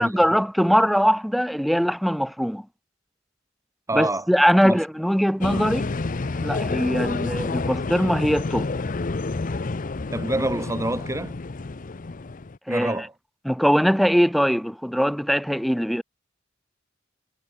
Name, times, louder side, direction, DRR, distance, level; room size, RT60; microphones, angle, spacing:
voice 1, 0.0-2.6 3.9-5.9 6.4-8.7 12.7-12.9 13.5-16.0, equal, ahead, 0.9 m, -21 dB
voice 2, 3.9-4.3 4.6-4.8 10.1-11.4 12.7-13.1, right 1 dB, 15° right, 4.4 m, -26 dB
sound 1, 5.4-12.6, left 3 dB, 45° left, 0.7 m, -29 dB
head